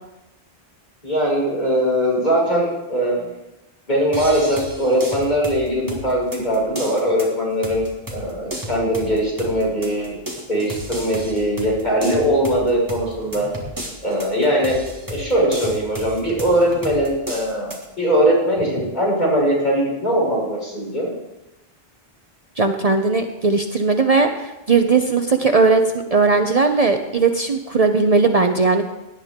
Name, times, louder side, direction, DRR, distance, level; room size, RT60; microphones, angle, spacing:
voice 1, 1.0-3.3 3.9-7.8 8.1-10.2 10.5-13.5 14.0-14.8 15.1-21.1, equal, 45° left, -5 dB, 5.9 m, -20 dB
sound 1, 4.1-17.9, right 1 dB, 20° right, 2.2 m, -34 dB
voice 2, 22.6-25.8 26.1-28.9, right 4 dB, 40° right, 6 dB, 0.7 m, -18 dB
17.5 x 11.0 x 3.7 m, 0.99 s
omnidirectional pair, 1.0 m